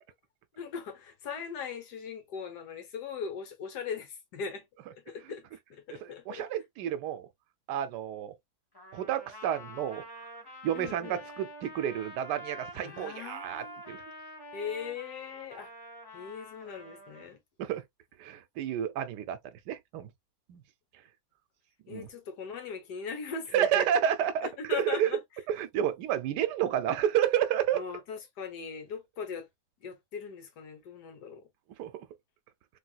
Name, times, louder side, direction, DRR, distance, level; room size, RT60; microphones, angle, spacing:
voice 1, 0.5-4.6 5.1-6.5 10.7-11.2 12.8-13.8 14.5-15.7 16.1-17.4 21.9-23.9 24.4-25.2 27.7-29.5 29.8-31.5, left 6 dB, 80° left, 1.5 m, -39 dB
voice 2, 6.0-7.3 7.7-8.3 8.9-10.0 10.6-14.0 17.6-17.8 18.2-19.4 19.7-20.1 20.5-20.6 21.9-22.1 23.5-25.1 25.5-27.8 31.8-32.1, right 10 dB, 90° right, 1.2 m, -30 dB
Trumpet, 8.7-17.3, equal, 15° left, 1.1 m, -47 dB
3.4 x 2.9 x 2.2 m
omnidirectional pair, 1.8 m